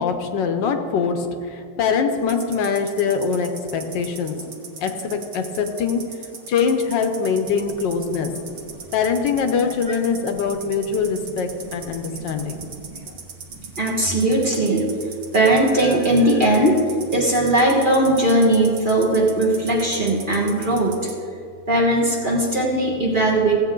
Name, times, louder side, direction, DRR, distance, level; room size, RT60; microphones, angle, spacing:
voice 1, 0.0-4.5 4.8-6.1 6.5-8.3 8.9-12.6 13.1-13.2, left 5 dB, 75° left, 6 dB, 1.4 m, -23 dB
sound 1, 2.2-21.2, right 5 dB, 70° right, 1.7 m, -38 dB
voice 2, 12.0-13.1 13.5-14.9 15.3-16.8 17.1-21.0 21.7-23.6, right 1 dB, 30° right, -3 dB, 1.2 m, -19 dB
15.5 x 8.4 x 3.7 m, 2.3 s
omnidirectional pair, 2.1 m